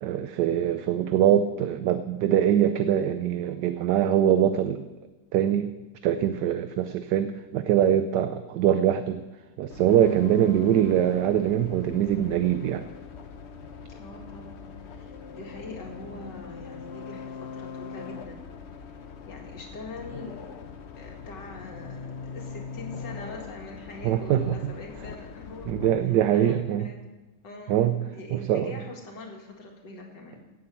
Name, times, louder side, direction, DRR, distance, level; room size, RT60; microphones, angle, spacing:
voice 1, 0.0-4.9 5.3-5.7 6.0-9.2 9.6-12.8 24.0-24.7 25.7-26.9 27.7-28.0 28.3-28.7, right 10 dB, 75° right, 10 dB, 1.3 m, -23 dB
sound 1, 9.7-25.9, left 5 dB, 45° left, 1.0 m, -41 dB
voice 2, 14.0-18.5 19.3-20.5 20.9-27.0 27.4-30.4, left 2 dB, 75° left, 0 dB, 2.9 m, -43 dB
17.5 x 7.7 x 7.1 m, 1.1 s
omnidirectional pair, 1.9 m